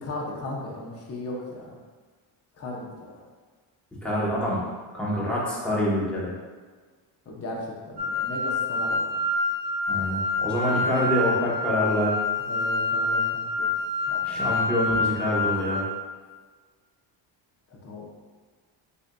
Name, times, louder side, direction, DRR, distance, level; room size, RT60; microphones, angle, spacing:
voice 1, 0.0-1.8 2.6-3.1 7.3-9.1 12.5-13.7 14.1-14.4 14.9-15.0 17.8-18.1, left 1 dB, 30° left, -2 dB, 0.8 m, -36 dB
voice 2, 4.0-4.6 4.9-6.3 9.9-12.1 14.2-15.8, left 1 dB, ahead, -7 dB, 0.9 m, -26 dB
sound 1, 8.0-15.8, left 3 dB, 60° right, 1.2 m, -27 dB
6.5 x 2.6 x 2.3 m, 1.5 s
cardioid pair, 130°, 47 cm